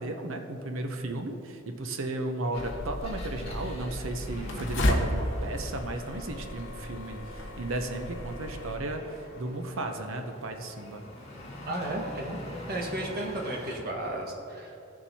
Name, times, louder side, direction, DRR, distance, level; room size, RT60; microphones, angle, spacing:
voice 1, 0.0-11.0, right 2 dB, 70° right, 5 dB, 0.7 m, -34 dB
Engine, 2.4-13.9, left 1 dB, 30° left, 1.8 m, -45 dB
sound 1, 2.6-8.8, left 1 dB, 60° left, 1.0 m, -33 dB
voice 2, 11.6-12.4 12.7-14.8, right 1 dB, 45° right, -1 dB, 1.6 m, -34 dB
15.5 x 7.1 x 2.8 m, 2.7 s
head